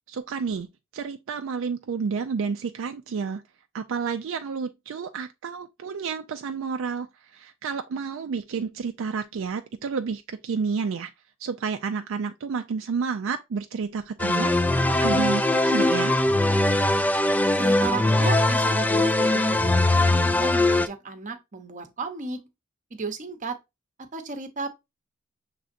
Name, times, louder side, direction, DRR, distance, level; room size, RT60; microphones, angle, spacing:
voice 1, 0.1-3.4 3.7-11.1 11.4-16.2, right 5 dB, 65° right, 0.4 m, -30 dB
sound 1, 14.2-20.9, left 2 dB, 10° left, 0.3 m, -21 dB
voice 2, 17.5-22.5 22.9-23.6 24.1-24.7, right 3 dB, 35° right, 0.8 m, -34 dB
6.2 x 3.3 x 2.6 m
head